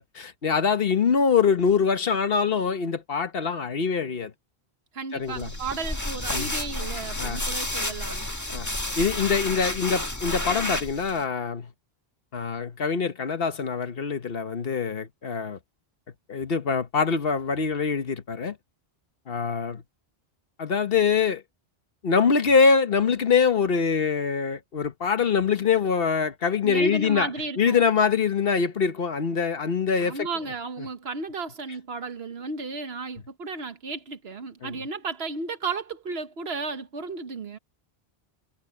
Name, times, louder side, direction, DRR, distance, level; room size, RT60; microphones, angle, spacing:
voice 1, 0.0-4.3 5.1-5.5 6.3-6.5 7.2-7.4 8.5-8.7 9.0-11.7 12.3-15.6 16.3-18.6 19.3-19.8 20.6-21.4 22.0-27.3 27.6-30.3 34.6-34.7, left 5 dB, 65° left, 1.3 m, -24 dB
voice 2, 4.9-8.3 26.6-27.8 30.0-37.6, right 4 dB, 70° right, 1.5 m, -34 dB
sound 1, 5.3-11.2, left 1 dB, 15° left, 1.6 m, -31 dB
omnidirectional pair, 1.1 m